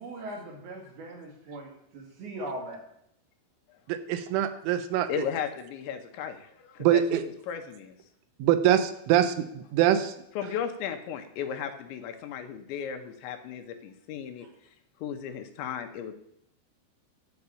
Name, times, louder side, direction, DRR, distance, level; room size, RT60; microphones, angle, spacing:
voice 1, 0.0-2.9 14.4-14.5, right 1 dB, 60° right, 1 dB, 3.6 m, -40 dB
voice 2, 3.9-5.1 6.8-7.2 8.4-10.2, right 11 dB, 90° right, 10 dB, 3.3 m, -24 dB
voice 3, 5.1-7.9 10.4-14.5 15.0-16.1, left 8 dB, 75° left, 6 dB, 3.0 m, -35 dB
11.5 x 5.3 x 8.3 m, 0.74 s
omnidirectional pair, 5.6 m